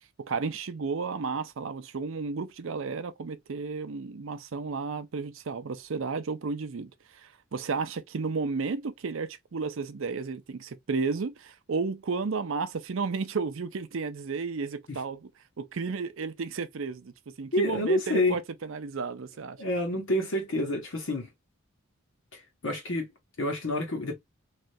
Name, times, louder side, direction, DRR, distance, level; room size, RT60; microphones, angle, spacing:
voice 1, 0.0-15.3 15.6-19.6, right 4 dB, 70° right, 0.5 m, -33 dB
voice 2, 17.5-18.4 19.6-21.3 22.3-23.1 23.4-24.1, left 1 dB, 65° left, 0.8 m, -28 dB
3.2 x 2.4 x 2.6 m
head